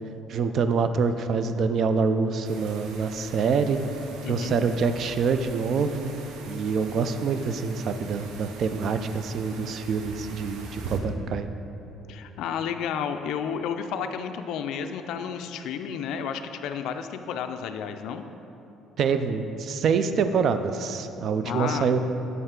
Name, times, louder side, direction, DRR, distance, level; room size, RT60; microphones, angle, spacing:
voice 1, 0.3-3.8 4.3-6.1 6.5-11.5 19.0-22.0, right 5 dB, 45° right, 9 dB, 0.3 m, -26 dB
sound 1, 2.4-11.0, right 4 dB, 80° right, 0.7 m, -42 dB
voice 2, 4.2-4.6 12.1-18.2 21.4-21.9, left 7 dB, 70° left, 8 dB, 0.3 m, -31 dB
7.8 x 5.6 x 3.7 m, 2.9 s
cardioid pair, 155°, 0 cm